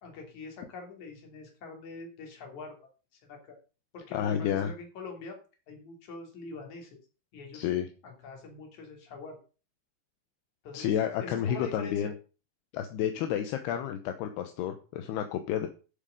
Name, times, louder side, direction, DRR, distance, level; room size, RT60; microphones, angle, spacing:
voice 1, 0.0-2.7 3.1-3.6 3.9-5.4 5.7-7.0 7.3-7.7 8.0-9.4 10.6-12.0, left 4 dB, 45° left, 2 dB, 3.9 m, -44 dB
voice 2, 4.1-4.7 7.5-7.9 10.7-12.1 12.7-15.7, left 9 dB, 75° left, 7 dB, 2.6 m, -30 dB
11.5 x 7.2 x 5.2 m, 0.35 s
omnidirectional pair, 5.4 m